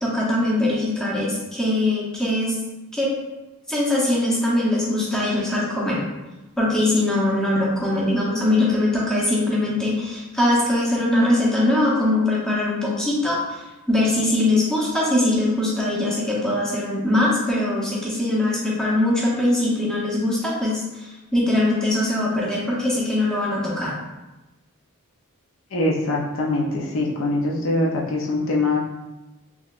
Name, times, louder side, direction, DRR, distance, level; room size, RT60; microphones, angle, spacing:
voice 1, 0.0-2.5 2.9-3.1 3.7-6.0 6.6-13.6 13.9-23.9, left 1 dB, 5° left, -6 dB, 0.7 m, -22 dB
voice 2, 25.7-28.8, left 2 dB, 60° left, -2 dB, 0.5 m, -23 dB
3.7 x 3.1 x 2.4 m, 1.0 s
head